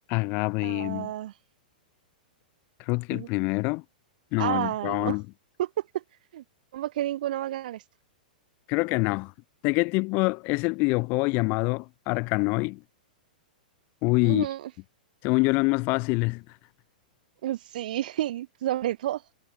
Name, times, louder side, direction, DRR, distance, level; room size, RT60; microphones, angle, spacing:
voice 1, 0.1-1.1 2.9-3.8 4.3-5.2 8.7-9.3 9.6-12.8 14.0-14.5 15.2-16.4, left 28 dB, 40° left, 0.6 m, -25 dB
voice 2, 0.6-1.3 3.1-3.3 4.4-5.2 5.6-6.0 6.3-6.4 6.7-7.8 14.2-14.7 17.4-19.2, right 13 dB, 65° right, 0.6 m, -30 dB
hypercardioid pair, 125°, 5 cm